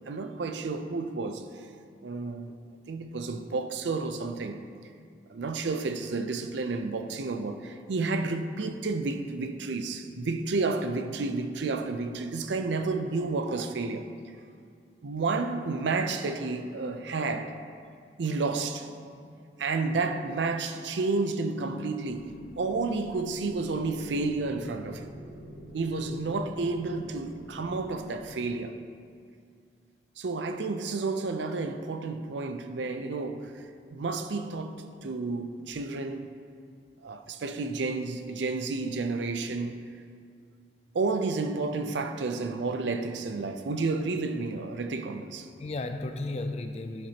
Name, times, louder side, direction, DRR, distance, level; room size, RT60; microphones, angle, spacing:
voice 1, 0.0-1.7 2.0-2.5 2.9-4.6 5.3-14.1 15.0-17.5 18.2-18.9 19.6-22.3 22.6-25.1 25.7-28.7 30.2-36.3 37.0-39.8 40.9-45.5, right 3 dB, 75° right, 0.5 m, -31 dB
voice 2, 19.0-19.5 20.9-21.0 45.6-47.1, left 2 dB, 35° left, 0.4 m, -35 dB
sound 1, 22.1-28.2, equal, 55° left, 1.1 m, -46 dB
11.0 x 5.8 x 2.9 m
head